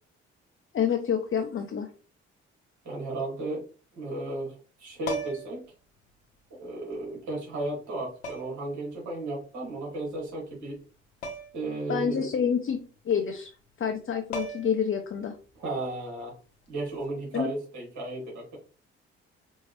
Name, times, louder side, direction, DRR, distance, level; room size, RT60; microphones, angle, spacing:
voice 1, 0.7-1.9 11.9-12.8 13.0-13.5 13.8-15.4 17.3-17.5, left 7 dB, 35° left, 3 dB, 0.8 m, -27 dB
voice 2, 2.8-3.7 3.9-5.7 6.5-10.8 11.5-12.3 15.6-16.4 16.7-18.6, right 2 dB, 60° right, -2 dB, 2.5 m, -34 dB
sound 1, 5.1-5.6 6.9-7.0 8.2-8.7 11.2-11.7 12.0-12.1 13.9-14.0 14.3-14.9 16.9-17.1, right 1 dB, 85° left, 0.7 m, -36 dB
5.4 x 2.7 x 3.1 m, 0.36 s
hypercardioid pair, 45°, 33 cm